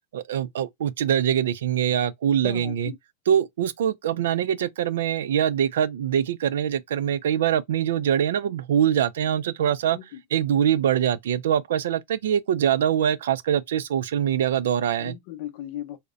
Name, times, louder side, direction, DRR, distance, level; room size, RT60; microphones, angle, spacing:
voice 1, 0.1-2.9 3.3-10.0 10.3-15.1, right 9 dB, 80° right, 0.3 m, -23 dB
voice 2, 2.4-3.0 9.9-10.2 15.0-16.0, left 12 dB, 55° left, 0.6 m, -37 dB
2.7 x 2.1 x 2.4 m
supercardioid pair, 135°, 0 cm